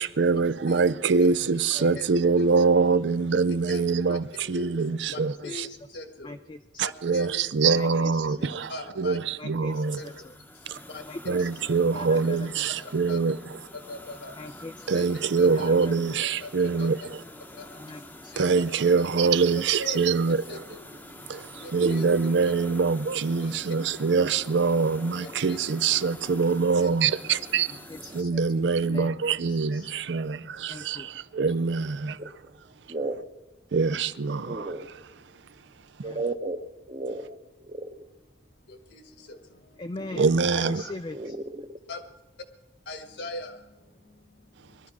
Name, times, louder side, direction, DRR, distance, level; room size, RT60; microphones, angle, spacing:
voice 1, 0.0-5.7 6.8-10.0 10.7-10.8 11.3-13.4 14.9-17.2 18.4-20.4 21.3-27.7 28.1-32.2 33.7-34.7 40.2-40.8, right 4 dB, 75° right, 0.5 m, -24 dB
voice 2, 1.7-2.1 2.4-2.5 3.5-3.8 4.1-4.2 4.5-4.7 5.1-6.4 6.8-7.5 8.4-9.2 10.0-10.3 10.9-11.0 11.9-12.4 13.1-13.2 13.7-14.6 14.9-15.7 16.2-17.1 17.5-17.9 18.3-19.1 19.8-20.1 20.5-20.9 21.6-22.1 22.4-22.5 23.4-23.7 25.2-25.6 26.8-26.9 27.3-27.5 35.3-36.0 38.4-39.8 41.9-42.0 42.8-44.9, left 2 dB, 70° left, 1.6 m, -42 dB
voice 3, 5.2-5.8 6.2-6.8 7.8-8.5 9.4-10.3 11.1-12.7 14.4-15.0 15.5-16.2 17.8-18.5 24.8-24.9 25.2-25.4 27.7-28.4 28.8-29.9 30.7-31.5 36.0-36.2 39.8-41.4, left 2 dB, 25° left, 0.4 m, -42 dB
sound 1, 9.7-28.2, left 1 dB, 10° left, 0.8 m, -46 dB
voice 4, 32.9-33.2 34.4-34.9 36.0-38.0 41.1-41.7, right 2 dB, 30° right, 0.9 m, -34 dB
22.0 x 13.0 x 4.8 m
head